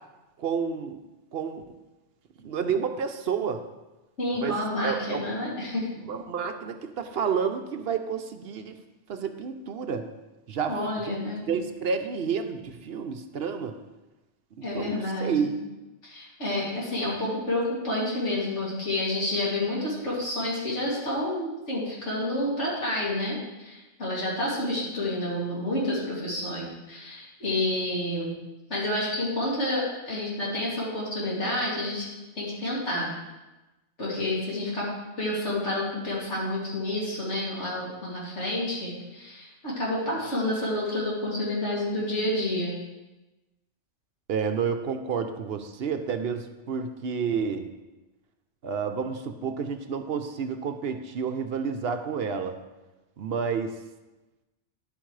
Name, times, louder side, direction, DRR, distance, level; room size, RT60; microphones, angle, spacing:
voice 1, 0.4-1.0 1.3-1.6 2.4-3.6 4.4-4.5 4.8-5.3 6.0-8.8 9.1-10.1 10.5-10.7 11.5-13.8 14.6-15.6 44.3-47.7 48.6-52.6 53.2-53.8, right 6 dB, 60° right, 7 dB, 0.8 m, -30 dB
voice 2, 4.2-5.9 10.7-11.4 14.6-15.5 16.0-28.3 28.7-32.1 32.4-33.1 34.0-34.9 35.2-42.7, left 1 dB, 65° left, -6 dB, 2.8 m, -29 dB
10.5 x 8.0 x 3.2 m, 1.1 s
omnidirectional pair, 1.3 m